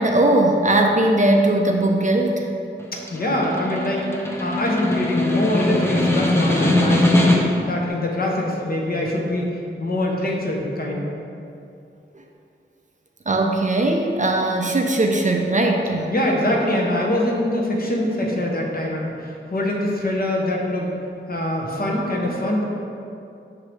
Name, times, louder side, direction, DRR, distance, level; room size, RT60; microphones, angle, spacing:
voice 1, 0.0-2.5 13.3-16.1, right 1 dB, 35° right, 2 dB, 0.4 m, -19 dB
Snare drum, 2.8-7.7, left 1 dB, 10° left, 0.6 m, -21 dB
voice 2, 2.9-4.1 4.4-9.5 9.8-11.0 16.1-20.9 21.3-22.6, left 1 dB, 45° left, -1 dB, 0.8 m, -23 dB
5.9 x 2.7 x 3.2 m, 2.6 s
cardioid pair, 45°, 21 cm